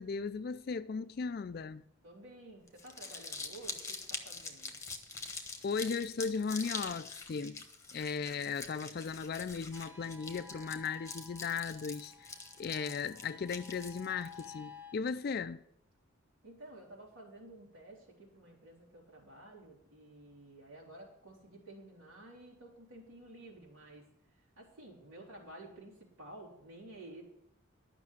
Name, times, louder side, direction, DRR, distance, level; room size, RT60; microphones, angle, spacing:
voice 1, 0.0-1.8 5.6-7.6 7.9-12.3 12.6-15.6, left 5 dB, 50° left, 0.4 m, -37 dB
voice 2, 2.0-4.8 16.4-27.2, right 1 dB, 85° right, 3.3 m, -52 dB
Crumpling crinkling, 2.7-14.5, left 4 dB, 15° left, 1.1 m, -44 dB
sound 1, 9.7-14.9, left 5 dB, 10° right, 0.6 m, -54 dB
12.0 x 6.0 x 8.2 m
head